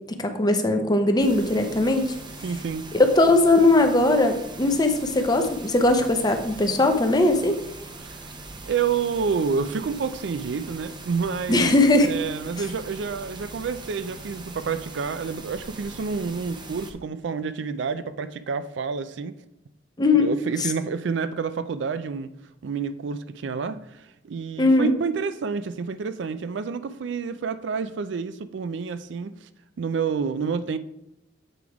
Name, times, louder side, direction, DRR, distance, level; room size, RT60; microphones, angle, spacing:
voice 1, 0.1-2.1 2.9-7.6 11.5-12.1 20.0-20.3 24.6-24.9, left 2 dB, 20° left, 6 dB, 0.7 m, -19 dB
sound 1, 1.2-16.9, right 3 dB, 25° right, 0.6 m, -41 dB
voice 2, 2.4-2.9 8.0-8.2 8.7-11.8 12.0-19.4 20.2-22.3 22.6-29.5 29.8-30.8, right 5 dB, 70° right, 13 dB, 0.4 m, -29 dB
7.9 x 3.6 x 4.7 m, 0.88 s
head